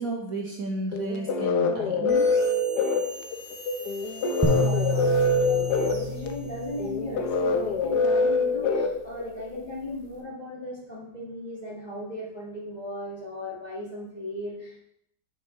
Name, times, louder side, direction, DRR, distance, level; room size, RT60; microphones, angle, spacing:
voice 1, 0.0-2.3, right 2 dB, 50° right, 0 dB, 1.4 m, -32 dB
sound 1, 0.9-9.6, left 3 dB, 65° left, 1.2 m, -25 dB
sound 2, 2.1-7.0, right 1 dB, 30° right, 1.8 m, -45 dB
voice 2, 4.2-14.8, left 1 dB, 25° left, -5 dB, 1.8 m, -37 dB
sound 3, 4.4-7.7, equal, 10° right, 1.0 m, -29 dB
10.0 x 5.5 x 3.8 m, 0.74 s
omnidirectional pair, 2.0 m